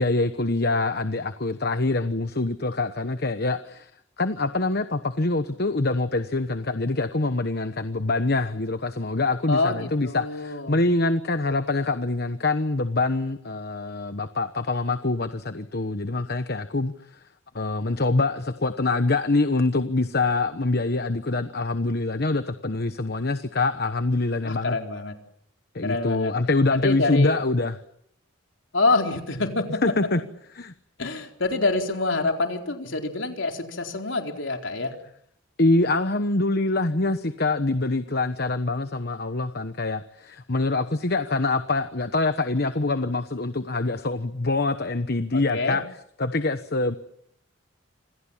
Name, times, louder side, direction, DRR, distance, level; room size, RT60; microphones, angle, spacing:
voice 1, 0.0-3.9 4.2-16.9 17.5-24.8 25.7-27.8 29.8-30.2 30.5-30.7 35.6-45.8 46.2-47.0, left 2 dB, 50° left, 10 dB, 1.1 m, -25 dB
voice 2, 9.5-10.8 24.4-25.1 25.8-26.3 26.7-27.4 28.7-29.8 31.0-34.9 45.3-45.8, left 3 dB, 65° left, 3 dB, 4.3 m, -26 dB
27.5 x 27.0 x 7.4 m, 0.70 s
head